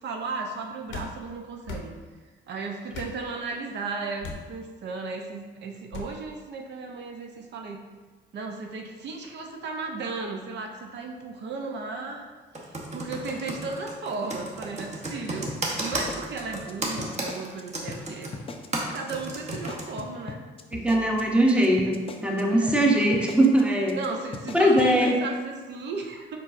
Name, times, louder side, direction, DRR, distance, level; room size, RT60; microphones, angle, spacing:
voice 1, 0.0-2.0 2.5-7.8 8.3-12.3 12.5-18.3 18.9-20.4 22.3-22.9 23.9-26.4, right 4 dB, 60° right, 2 dB, 0.5 m, -35 dB
sound 1, 0.9-1.1 1.6-1.9 2.9-3.2 4.2-4.5 5.9-6.1, left 4 dB, 75° left, 0.7 m, -37 dB
Computer keyboard, 12.5-19.8, right 2 dB, 35° right, 0.8 m, -32 dB
sound 2, 15.5-17.6 17.9-18.0 18.3-18.8 19.1-19.3 19.5-22.4 22.7-22.8 23.1-23.6 23.9-24.1 24.3-24.9, left 4 dB, 30° left, 0.4 m, -39 dB
voice 2, 20.7-24.0 24.5-25.2, right 1 dB, 5° right, -1 dB, 0.7 m, -21 dB
4.4 x 4.1 x 2.5 m, 1.3 s
cardioid pair, 90°, 20 cm